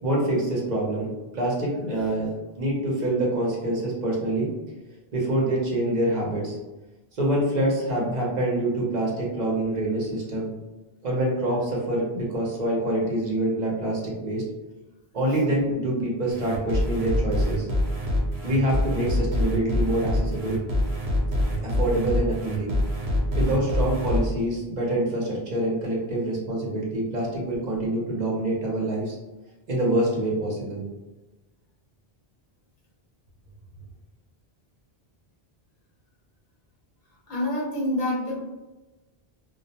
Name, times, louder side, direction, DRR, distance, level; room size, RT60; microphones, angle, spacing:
voice 1, 0.0-2.3 2.6-4.5 5.1-6.6 7.2-10.5 11.0-14.4 15.1-17.7 18.4-20.6 21.6-22.7 23.4-29.2 29.7-30.8, right 1 dB, 50° right, -4 dB, 0.8 m, -26 dB
sound 1, 16.3-24.2, left 1 dB, 85° right, 1.0 m, -25 dB
voice 2, 37.3-38.4, left 1 dB, 50° left, -5 dB, 0.9 m, -28 dB
2.4 x 2.1 x 2.7 m, 1.1 s
omnidirectional pair, 1.0 m